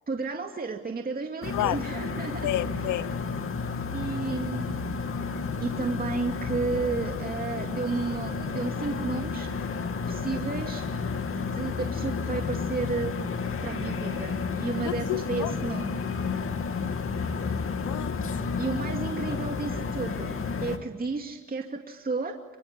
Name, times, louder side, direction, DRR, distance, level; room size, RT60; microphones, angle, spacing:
voice 1, 0.1-2.4 3.9-4.7 5.6-9.5 10.1-10.8 11.3-13.1 13.6-15.9 18.6-20.3 20.6-22.3, right 4 dB, 30° right, 2.5 m, -32 dB
sound 1, 1.4-20.8, left 5 dB, 45° left, 2.7 m, -31 dB
voice 2, 2.4-3.1 14.8-15.7 17.8-18.2, left 14 dB, 80° left, 0.9 m, -30 dB
25.5 x 23.5 x 9.7 m
cardioid pair, 90°, 30 cm